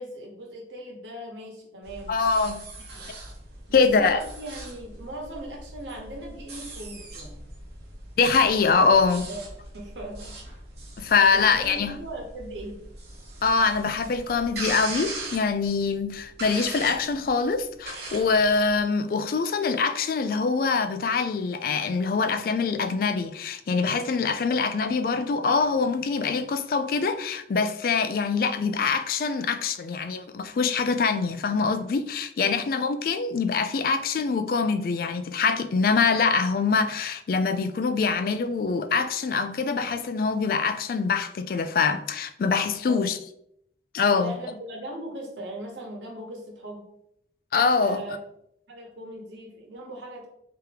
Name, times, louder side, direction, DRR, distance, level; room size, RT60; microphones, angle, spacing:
voice 1, 0.0-2.1 2.8-3.1 3.7-7.4 9.3-9.4 9.7-10.3 11.3-12.8 32.4-32.6 42.8-43.1 44.2-46.8 47.8-48.2 48.7-50.3, right 1 dB, 85° right, 1.2 m, -39 dB
sound 1, 1.8-18.8, right 2 dB, 65° right, 0.9 m, -40 dB
voice 2, 2.1-2.6 3.7-4.2 8.2-9.3 11.0-11.9 13.4-43.2 43.9-44.3 47.5-48.0, left 4 dB, 50° left, 0.3 m, -24 dB
3.5 x 2.8 x 3.3 m
head